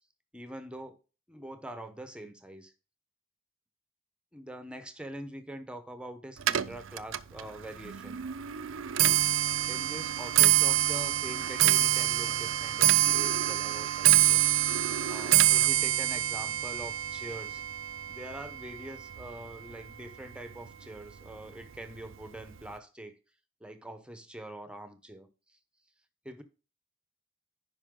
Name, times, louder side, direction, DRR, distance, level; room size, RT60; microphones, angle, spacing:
voice 1, 0.3-1.0 1.3-2.7 4.3-8.2 9.7-14.4 15.0-17.6 18.1-23.2 23.6-25.6 26.2-26.4, right 1 dB, 5° right, 9 dB, 0.9 m, -44 dB
Clock, 6.4-19.7 20.1-20.5 21.3-21.4 21.7-22.1 22.4-22.5, right 14 dB, 75° right, 0.5 m, -26 dB
9.9 x 5.5 x 3.8 m, 0.33 s
head